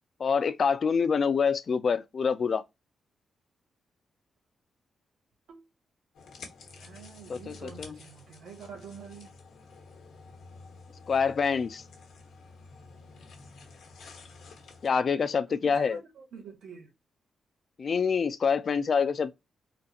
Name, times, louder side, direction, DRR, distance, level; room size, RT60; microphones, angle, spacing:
voice 1, 0.2-2.6 7.3-8.0 11.1-11.8 14.8-16.0 17.8-19.3, left 6 dB, 45° left, 0.4 m, -26 dB
sound 1, 6.1-14.9, left 3 dB, 80° left, 1.2 m, -50 dB
voice 2, 6.8-9.4 15.5-16.9, right 6 dB, 80° right, 1.4 m, -47 dB
3.8 x 2.5 x 2.7 m
cardioid pair, 110°, 0 cm